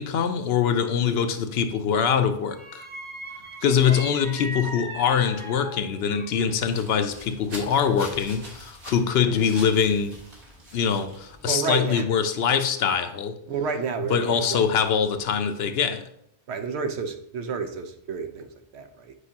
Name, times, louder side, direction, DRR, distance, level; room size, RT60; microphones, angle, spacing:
voice 1, 0.0-2.9 3.6-10.1 10.7-13.4 14.1-16.1, left 7 dB, 75° left, 9 dB, 0.8 m, -23 dB
sound 1, 1.3-1.7 2.5-6.5 6.9-7.8 8.2-8.5, right 1 dB, 30° right, 0.9 m, -39 dB
sound 2, 6.3-11.4, equal, 45° right, 1.5 m, -44 dB
voice 2, 9.2-9.5 11.5-12.0 13.5-14.7 16.5-19.1, right 5 dB, 80° right, 7 dB, 1.0 m, -31 dB
8.1 x 4.9 x 2.8 m, 0.74 s
omnidirectional pair, 1.1 m